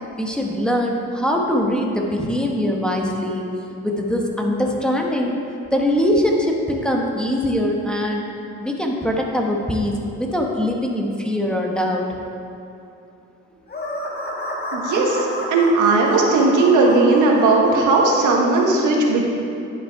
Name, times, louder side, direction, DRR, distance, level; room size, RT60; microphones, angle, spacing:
voice 1, 0.2-3.5 3.8-5.4 5.7-8.3 8.6-12.0, left 1 dB, 5° left, -1 dB, 1.1 m, -22 dB
sound 1, 13.7-18.4, left 1 dB, 30° left, 1.7 m, -30 dB
voice 2, 14.7-19.2, right 3 dB, 85° right, -1 dB, 1.4 m, -17 dB
11.0 x 5.6 x 4.6 m, 2.7 s
cardioid pair, 90°, 30 cm